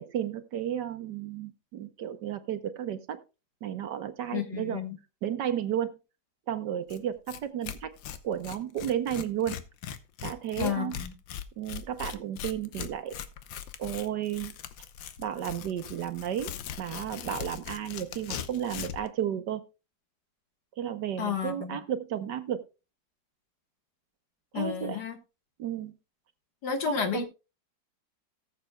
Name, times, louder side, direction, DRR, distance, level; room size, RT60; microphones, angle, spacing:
voice 1, 0.0-3.2 3.6-4.8 5.2-5.9 6.5-7.9 8.2-9.6 10.2-11.0 11.6-13.2 13.8-14.5 15.2-19.6 20.8-22.6 24.5-25.0 25.6-25.9 26.9-27.2, right 10 dB, 70° right, 1.5 m, -33 dB
voice 2, 4.3-5.0 10.6-11.1 21.2-21.8 24.5-25.2 26.6-27.2, left 8 dB, 65° left, 1.9 m, -31 dB
Tearing, 6.9-7.0 7.3-7.4 7.6-19.1, left 9 dB, 85° left, 1.5 m, -40 dB
18.0 x 7.3 x 2.2 m
omnidirectional pair, 2.0 m